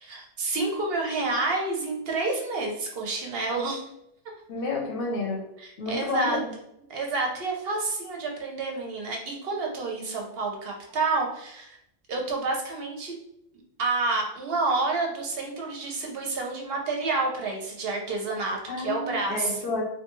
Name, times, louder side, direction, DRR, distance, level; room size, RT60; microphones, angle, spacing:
voice 1, 0.0-3.8 5.6-6.4 6.9-11.8 12.1-13.1 13.8-19.6, right 3 dB, 65° right, 1 dB, 0.8 m, -29 dB
voice 2, 4.5-5.5 5.8-6.5 18.7-19.8, left 3 dB, 60° left, -1 dB, 0.7 m, -30 dB
2.5 x 2.2 x 3.0 m, 0.77 s
omnidirectional pair, 1.2 m